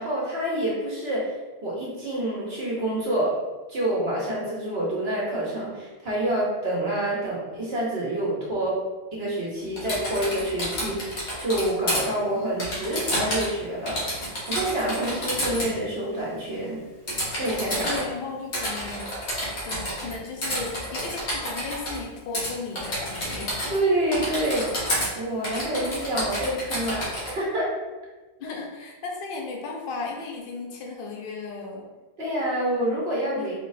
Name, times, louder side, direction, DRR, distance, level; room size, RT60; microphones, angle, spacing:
voice 1, 0.0-1.3 1.6-3.3 3.7-8.7 9.1-16.8 17.3-18.0 18.6-18.7 23.7-27.7 28.4-28.5 32.2-33.6, right 1 dB, 65° right, -5 dB, 1.3 m, -27 dB
Typing, 9.8-12.0 12.6-13.6 13.9-15.7 17.1-18.0 18.5-20.1 20.4-22.0 22.3-22.5 22.7-23.8 24.1-25.1 25.4-27.3, equal, 90° left, 1.5 m, -29 dB
voice 2, 17.8-19.1 19.6-23.6 28.4-31.9 33.4-33.6, left 4 dB, 60° left, 0 dB, 0.8 m, -35 dB
4.3 x 2.4 x 4.0 m, 1.2 s
omnidirectional pair, 1.1 m